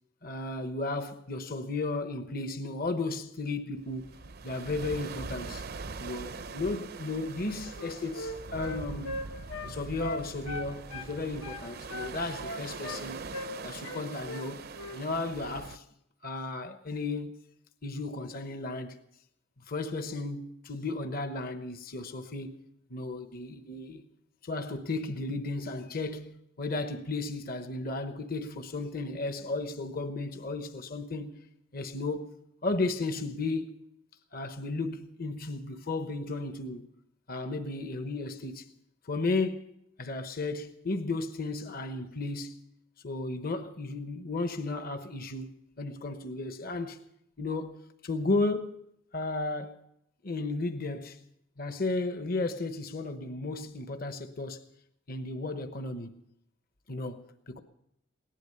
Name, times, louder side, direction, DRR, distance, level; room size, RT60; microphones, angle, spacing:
voice 1, 0.2-4.1 4.4-5.6 6.0-9.1 9.6-13.2 13.6-15.8 16.2-17.3 17.8-19.0 19.7-22.5 22.9-24.0 24.4-31.3 31.7-32.3 32.6-33.8 34.3-36.9 37.3-38.7 39.0-39.7 40.0-42.6 43.0-45.5 45.8-47.0 47.4-48.8 49.1-49.8 50.2-51.2 51.6-54.6 55.1-56.2 56.9-57.6, left 2 dB, 45° left, 1.0 m, -34 dB
sound 1, 3.8-15.8, right 4 dB, 50° right, 0.6 m, -42 dB
Wind instrument woodwind instrument, 7.7-11.1 11.4-13.0 13.3-13.5 13.8-14.5 14.7-15.0, left 1 dB, 85° left, 1.5 m, -39 dB
18.0 x 11.5 x 6.7 m
head